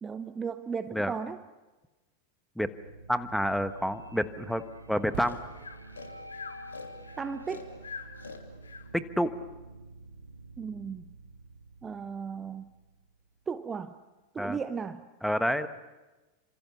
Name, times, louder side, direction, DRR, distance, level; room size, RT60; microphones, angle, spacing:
voice 1, 0.0-1.4 7.2-7.7 10.6-11.1 11.8-12.7 13.5-13.9 14.3-15.0, right 6 dB, 20° right, 12 dB, 0.8 m, -35 dB
sound 1, 2.6-13.5, right 2 dB, 85° right, 1.6 m, -49 dB
voice 2, 3.1-4.6 4.9-5.4 8.9-9.3 14.4-14.6 15.2-15.7, equal, ahead, 11 dB, 1.3 m, -28 dB
sound 2, 5.1-8.7 9.4-9.5, right 11 dB, 50° right, 2.0 m, -49 dB
Breathing, 5.2-8.9, left 5 dB, 70° left, 2.8 m, -44 dB
28.5 x 26.5 x 7.1 m, 1.1 s
figure-of-eight pair, 90°, 0 cm